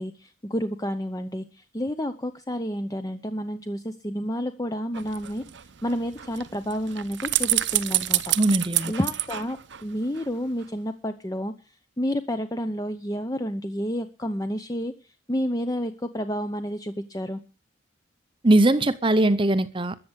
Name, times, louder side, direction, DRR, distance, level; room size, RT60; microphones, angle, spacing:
voice 1, 0.0-5.4 5.8-8.3 8.9-11.5 12.0-14.9 15.3-17.4, equal, 15° left, 0.8 m, -30 dB
sound 1, 4.9-10.3 10.6-10.7, right 15 dB, 55° right, 0.7 m, -28 dB
voice 2, 8.4-8.9 18.4-20.0, right 1 dB, 25° right, 0.7 m, -20 dB
14.0 x 8.6 x 8.1 m
head